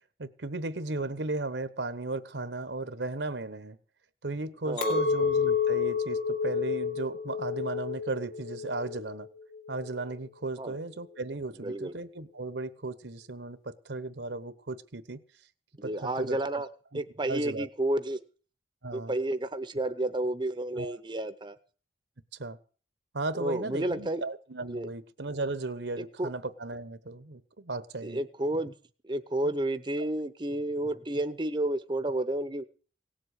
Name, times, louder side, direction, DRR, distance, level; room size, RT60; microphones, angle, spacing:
voice 1, 0.2-3.8 4.2-9.3 9.7-15.2 15.8-16.4 16.9-17.0 17.3-17.7 18.8-19.2 20.8-21.0 22.4-22.6 23.1-28.2, right 2 dB, 75° right, 14 dB, 1.1 m, -36 dB
voice 2, 4.6-5.0 10.6-10.8 11.6-11.9 15.8-16.7 16.9-18.2 18.9-21.6 23.3-24.2 24.7-24.9 26.0-26.3 28.0-28.8 29.0-32.6, right 1 dB, 25° right, 10 dB, 0.7 m, -31 dB
Chink clink, 4.8-10.1, left 6 dB, 65° left, 3.5 m, -30 dB
17.5 x 7.6 x 8.2 m, 0.41 s
head